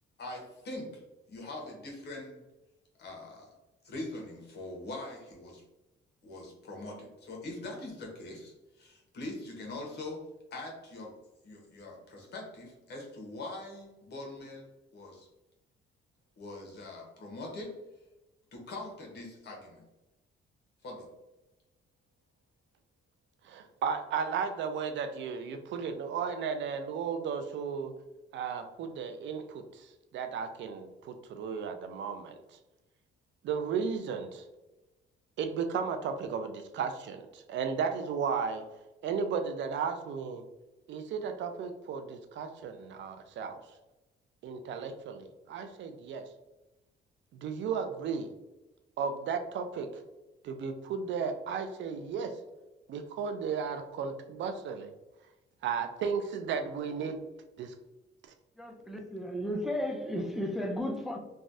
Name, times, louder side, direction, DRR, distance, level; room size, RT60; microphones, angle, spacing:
voice 1, 0.2-1.0 1.3-2.4 3.0-3.5 3.8-5.6 6.2-10.2 10.5-11.1 11.4-15.3 16.4-17.7 18.5-19.8 20.8-21.1, left 2 dB, 60° left, 0 dB, 1.1 m, -42 dB
voice 2, 23.4-27.9 28.3-29.9 30.1-32.6 33.4-34.4 35.4-38.7 39.0-40.4 40.9-43.6 44.4-46.3 47.3-48.3 49.0-49.9 50.4-52.4 52.9-54.9 55.6-57.2 57.6-57.7, right 6 dB, 70° right, 7 dB, 0.4 m, -34 dB
voice 3, 58.6-61.2, left 1 dB, ahead, 1 dB, 0.5 m, -34 dB
3.1 x 2.2 x 2.6 m, 1.0 s
cardioid pair, 90°, 20 cm